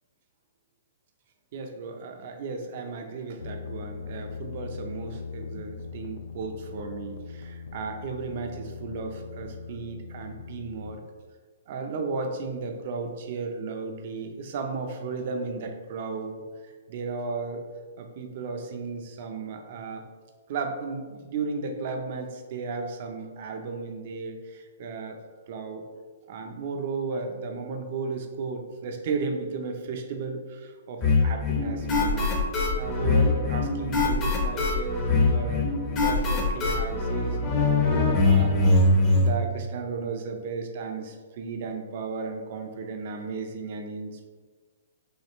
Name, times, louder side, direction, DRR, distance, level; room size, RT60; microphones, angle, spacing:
voice 1, 1.5-11.0 11.7-16.4 16.9-17.6 18.0-20.0 20.5-25.2 25.5-25.8 26.3-32.4 32.7-35.7 36.0-38.8 39.1-44.3, right 4 dB, 45° right, 4 dB, 0.6 m, -34 dB
sound 1, 3.4-10.9, left 5 dB, 75° left, 0.4 m, -40 dB
sound 2, 31.0-39.3, left 3 dB, 20° left, 0.9 m, -23 dB
6.3 x 2.4 x 3.0 m, 1.5 s
hypercardioid pair, 160°, 0 cm